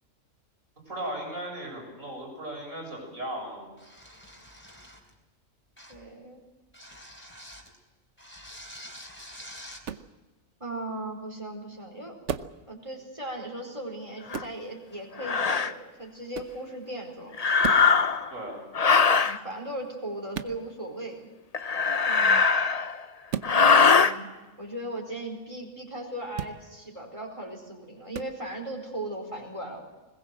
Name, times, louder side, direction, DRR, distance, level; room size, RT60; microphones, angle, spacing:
voice 1, 0.9-3.7 18.3-18.6, right 1 dB, 80° right, 1 dB, 7.3 m, -36 dB
sound 1, 3.8-5.1 5.8-6.1 6.7-7.7 8.2-9.9, equal, 10° left, 3.5 m, -46 dB
voice 2, 5.9-6.4 10.6-12.2 12.7-17.5 19.2-21.3 24.0-24.3 24.6-29.8, right 1 dB, 25° right, 1 dB, 4.6 m, -37 dB
sound 2, 9.8-10.1 12.3-12.6 14.3-14.6 16.3-16.6 17.6-17.9 20.3-20.6 23.3-23.6 26.3-26.6 28.1-28.3, right 8 dB, 65° right, 1.2 m, -34 dB
sound 3, 14.3-14.4 15.2-15.7 17.3-18.3 18.7-19.4 21.5-23.0 23.4-24.1, left 5 dB, 35° left, 0.8 m, -21 dB
21.0 x 21.0 x 7.7 m, 1.1 s
omnidirectional pair, 1.4 m